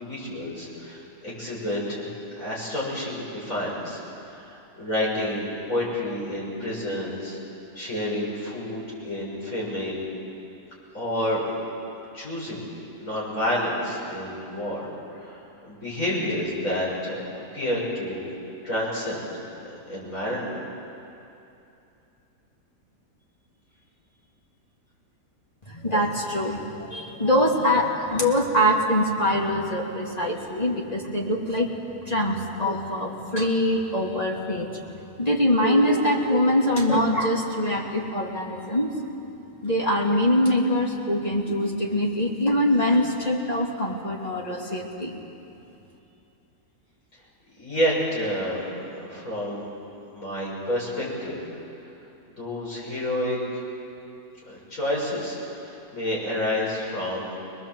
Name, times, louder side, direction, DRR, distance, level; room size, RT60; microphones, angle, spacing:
voice 1, 0.0-4.0 4.3-7.4 7.7-10.1 10.9-11.4 12.1-12.7 13.0-18.3 18.6-19.3 19.6-20.6 47.6-48.7 49.0-49.7 50.1-51.4 52.4-53.6 54.5-57.4, left 1 dB, 50° left, -5 dB, 6.6 m, -29 dB
voice 2, 25.7-31.7 32.1-34.7 35.2-38.9 39.6-45.2, equal, 25° left, -2 dB, 2.5 m, -23 dB
23.0 x 21.0 x 7.6 m, 2.8 s
omnidirectional pair, 1.8 m